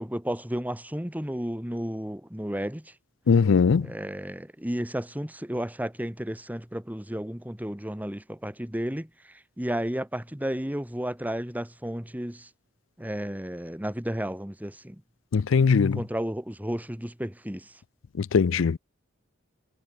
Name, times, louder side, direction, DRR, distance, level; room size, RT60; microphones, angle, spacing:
voice 1, 0.0-2.9 3.8-12.5 13.0-15.0 15.8-17.7, equal, 10° right, 1.9 m, -33 dB
voice 2, 3.3-3.9 15.3-16.0 18.2-18.8, left 5 dB, 75° left, 0.4 m, -20 dB
head